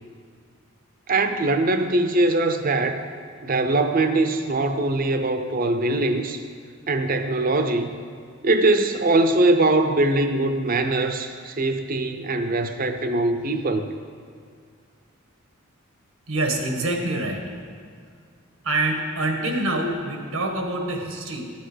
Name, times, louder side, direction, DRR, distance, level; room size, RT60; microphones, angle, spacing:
voice 1, 1.1-3.0 3.4-6.4 6.9-7.9 8.4-13.9, right 2 dB, 45° right, 8 dB, 0.7 m, -22 dB
voice 2, 16.3-17.4 18.6-21.5, right 2 dB, 90° right, 3 dB, 1.5 m, -26 dB
12.0 x 7.9 x 5.1 m, 2.2 s
head